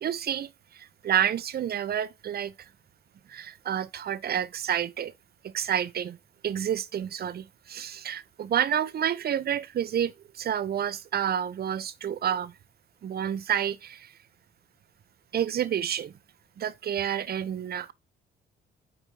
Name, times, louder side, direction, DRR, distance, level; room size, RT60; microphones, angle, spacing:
voice 1, 0.0-2.5 3.3-5.1 5.4-6.2 6.4-12.5 13.0-14.1 15.3-16.1 16.6-17.9, right 9 dB, 50° right, 0.8 m, -29 dB
9.4 x 4.3 x 3.8 m
cardioid pair, 90°, 20 cm